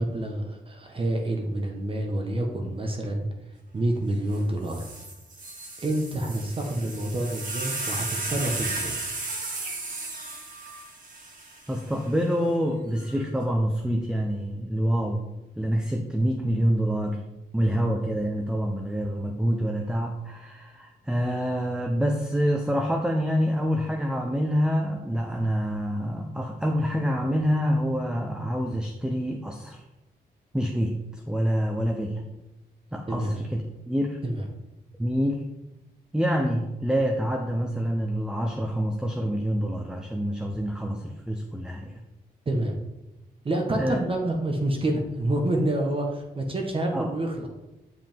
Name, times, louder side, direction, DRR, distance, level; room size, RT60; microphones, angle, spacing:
voice 1, 0.0-4.9 5.8-9.0 33.1-33.3 34.2-34.5 42.4-42.8 43.4-47.5, right 1 dB, 35° right, 2 dB, 1.1 m, -28 dB
sound 1, 4.3-4.4 4.7-12.1 13.0-13.4, right 2 dB, 55° right, 2.2 m, -35 dB
voice 2, 11.7-15.3 15.6-17.2 17.5-29.8 30.5-32.2 32.9-34.2 35.0-35.4 36.1-42.0 43.7-44.0 46.9-47.1, equal, 5° right, 3 dB, 0.7 m, -26 dB
9.7 x 5.3 x 3.6 m, 0.98 s
cardioid pair, 100°, 16 cm